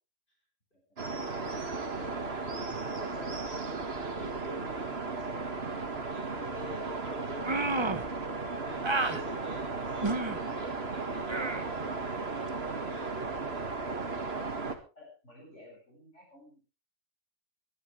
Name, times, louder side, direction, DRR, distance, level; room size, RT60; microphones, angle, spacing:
sound 1, 1.0-14.8, right 3 dB, 55° right, 2.1 m, -35 dB
voice 1, 1.2-5.1 6.1-11.9 12.3-12.5 12.8-13.2, left 1 dB, 45° left, -1 dB, 6.8 m, -48 dB
sound 2, 7.4-8.1 8.8-9.2 10.0-10.4 11.3-11.6, right 2 dB, 25° right, 1.1 m, -30 dB
voice 2, 14.6-16.6, left 1 dB, 75° left, -1 dB, 8.1 m, -55 dB
23.5 x 12.0 x 3.4 m, 0.33 s
omnidirectional pair, 1.2 m